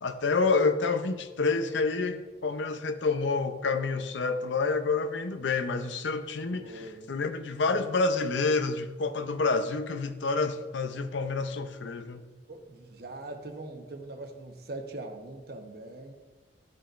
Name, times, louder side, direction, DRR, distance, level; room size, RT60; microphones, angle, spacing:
voice 1, 0.0-6.7 7.1-12.2, left 4 dB, 75° left, 0.6 m, -28 dB
voice 2, 6.5-7.1 12.5-16.1, right 2 dB, 55° right, 0.9 m, -42 dB
14.0 x 5.3 x 2.5 m
head